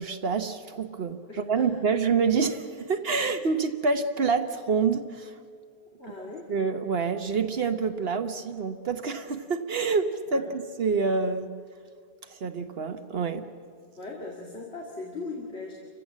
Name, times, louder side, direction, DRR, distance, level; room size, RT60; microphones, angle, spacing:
voice 1, 0.0-5.4 6.5-11.5 12.3-13.5, right 5 dB, 70° right, 8 dB, 1.2 m, -27 dB
voice 2, 1.3-1.7 6.0-6.5 10.3-10.5 14.0-15.7, left 3 dB, 80° left, -1 dB, 2.5 m, -39 dB
29.5 x 15.5 x 7.4 m, 2.1 s
omnidirectional pair, 1.1 m